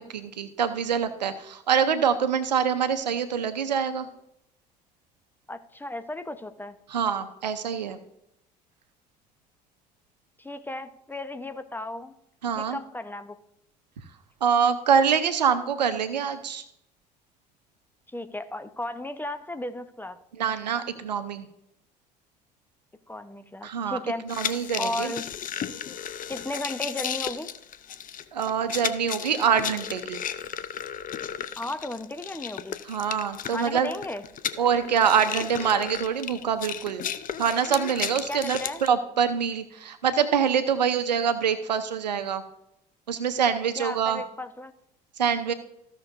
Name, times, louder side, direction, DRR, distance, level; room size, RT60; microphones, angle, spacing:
voice 1, 0.0-4.1 6.9-8.0 12.4-12.8 14.4-16.6 20.4-21.5 23.6-24.0 24.2-25.1 28.3-30.2 32.8-33.9 34.6-37.1 37.4-42.4 43.1-44.2 45.2-45.5, right 7 dB, 90° right, 11 dB, 0.7 m, -25 dB
voice 2, 5.5-6.8 10.4-12.1 12.6-13.4 18.1-20.2 23.1-24.3 24.8-25.2 26.3-27.5 31.6-32.8 33.5-34.2 38.3-38.8 43.8-44.7, left 1 dB, 10° left, 10 dB, 0.9 m, -35 dB
sound 1, 24.3-38.9, left 9 dB, 40° left, 0.7 m, -34 dB
15.5 x 6.3 x 2.6 m, 0.78 s
hypercardioid pair, 60°, 21 cm